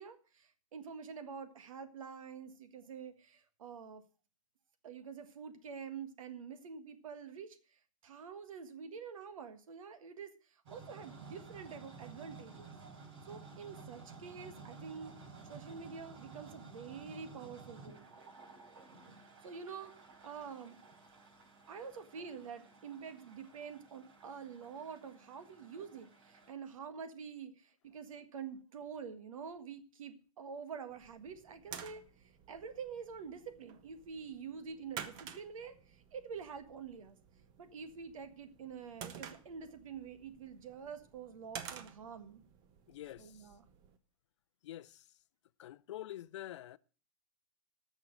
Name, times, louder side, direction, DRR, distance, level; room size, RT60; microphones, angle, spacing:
voice 1, 0.0-4.0 4.8-12.7 13.3-15.1 15.4-18.1 19.4-19.9 20.2-20.8 21.7-32.0 32.5-37.2 37.6-42.4 43.2-43.6, right 6 dB, 80° right, 1.7 m, -47 dB
sound 1, 10.7-26.5, right 4 dB, 50° right, 4.1 m, -54 dB
sound 2, 30.9-44.0, right 8 dB, 25° right, 0.8 m, -52 dB
voice 2, 42.9-43.5 44.6-45.2 45.6-46.8, left 13 dB, 60° left, 0.5 m, -47 dB
12.5 x 6.3 x 7.5 m
supercardioid pair, 165°, 17 cm